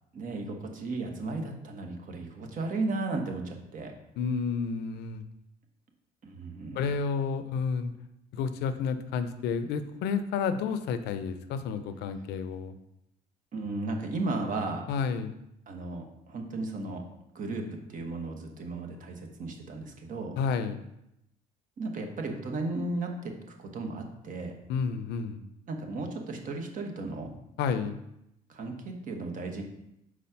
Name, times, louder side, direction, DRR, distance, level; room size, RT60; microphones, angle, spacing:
voice 1, 0.1-3.9 6.2-6.8 13.5-14.9 15.7-17.0 17.3-20.3 21.8-24.5 25.7-27.3 28.5-29.6, right 2 dB, 50° right, 3 dB, 1.2 m, -35 dB
voice 2, 4.2-5.2 6.7-7.9 8.3-12.8 14.9-15.3 20.4-20.8 24.7-25.4 27.6-28.0, left 6 dB, 85° left, 10 dB, 0.6 m, -30 dB
4.9 x 4.2 x 5.7 m, 0.82 s
cardioid pair, 110°, 17 cm